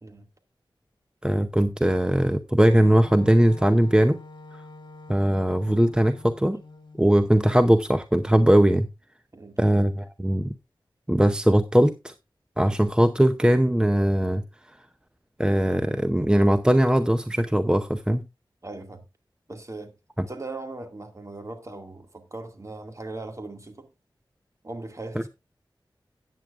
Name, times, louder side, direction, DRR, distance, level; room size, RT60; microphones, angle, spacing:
voice 1, 1.2-4.2 5.1-6.6 7.0-8.9 9.6-10.5 11.1-12.1 12.6-14.4 15.4-18.2, right 1 dB, 10° right, 0.7 m, -20 dB
Wind instrument woodwind instrument, 2.6-7.3, left 3 dB, 60° left, 1.8 m, -46 dB
voice 2, 18.6-19.1 19.5-19.9 20.3-23.9 24.6-25.3, right 2 dB, 35° right, 2.2 m, -39 dB
14.0 x 9.2 x 2.5 m
wide cardioid pair, 60°, 9 cm